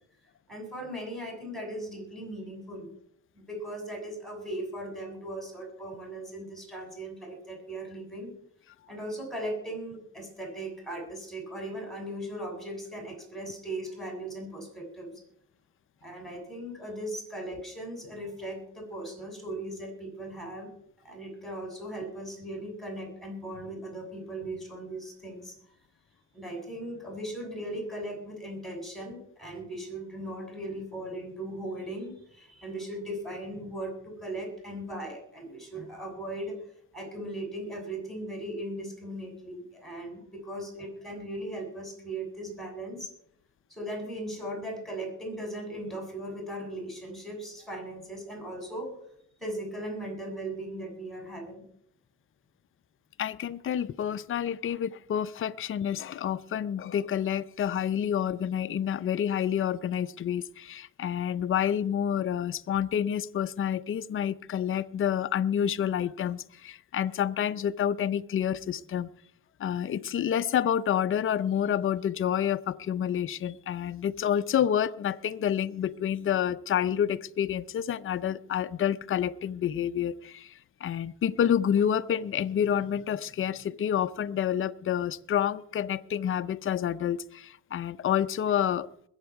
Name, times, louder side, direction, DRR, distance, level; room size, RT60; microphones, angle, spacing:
voice 1, 0.5-2.9 3.3-8.3 8.9-15.2 16.0-20.7 21.0-25.5 26.3-36.6 36.9-43.1 43.7-48.9 49.4-51.6, right 1 dB, ahead, 1 dB, 7.0 m, -38 dB
voice 2, 53.2-69.1 69.6-88.9, left 9 dB, 45° left, 12 dB, 0.6 m, -28 dB
21.5 x 8.1 x 4.7 m, 0.69 s
cardioid pair, 90°, 30 cm